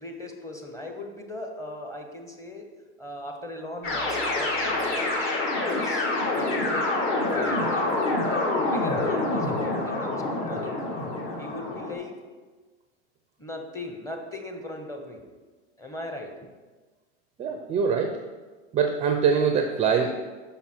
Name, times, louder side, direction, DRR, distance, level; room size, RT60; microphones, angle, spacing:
voice 1, 0.0-2.7 3.0-5.2 5.5-6.9 7.3-7.9 8.6-10.8 11.4-12.3 13.4-15.2 15.8-16.4, left 1 dB, 10° left, 3 dB, 0.9 m, -38 dB
sound 1, 3.8-11.9, left 2 dB, 35° left, 1.5 m, -26 dB
voice 2, 17.4-18.2 18.7-20.1, right 6 dB, 20° right, 4 dB, 0.4 m, -23 dB
5.9 x 5.7 x 4.3 m, 1.3 s
hypercardioid pair, 110°, 34 cm